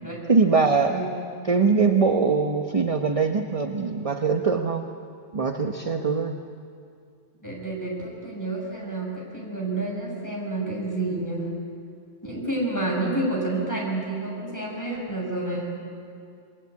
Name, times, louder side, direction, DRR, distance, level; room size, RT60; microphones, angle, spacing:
voice 1, 0.3-1.0 1.4-4.9 5.3-6.4, right 4 dB, 30° right, 4 dB, 1.1 m, -22 dB
voice 2, 0.8-1.1 7.4-11.5 12.2-15.7, right 2 dB, 15° left, -3 dB, 7.0 m, -29 dB
28.0 x 22.0 x 8.4 m, 2.3 s
omnidirectional pair, 1.2 m